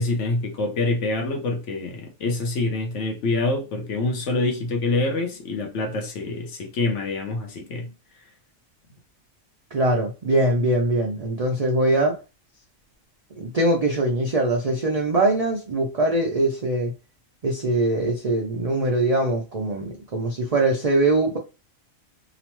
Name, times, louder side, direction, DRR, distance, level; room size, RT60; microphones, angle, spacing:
voice 1, 0.0-7.9, left 2 dB, 65° left, 1.0 m, -26 dB
voice 2, 9.7-12.2 13.4-16.9 17.4-21.4, right 2 dB, 70° right, 0.3 m, -22 dB
2.9 x 2.0 x 3.0 m
omnidirectional pair, 1.4 m